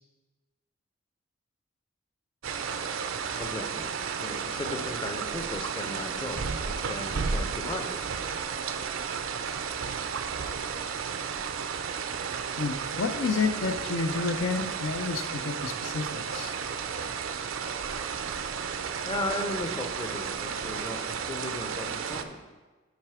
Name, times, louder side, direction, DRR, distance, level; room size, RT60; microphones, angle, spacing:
sound 1, 2.4-22.2, right 6 dB, 80° right, 0.5 m, -33 dB
voice 1, 3.4-3.9 4.2-8.0 19.0-22.4, left 2 dB, 25° left, 6 dB, 0.6 m, -36 dB
voice 2, 12.6-16.6, left 4 dB, 75° left, 8 dB, 0.5 m, -30 dB
7.6 x 4.9 x 4.8 m, 1.3 s
head